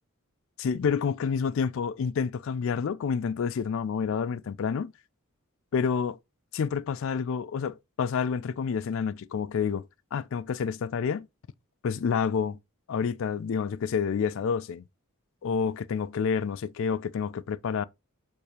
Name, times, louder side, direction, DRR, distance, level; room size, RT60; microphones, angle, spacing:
voice 1, 0.6-4.9 5.7-6.2 6.5-11.3 11.8-12.6 12.9-14.8 15.4-17.8, left 6 dB, 60° left, 0.3 m, -29 dB
6.5 x 2.7 x 2.8 m
head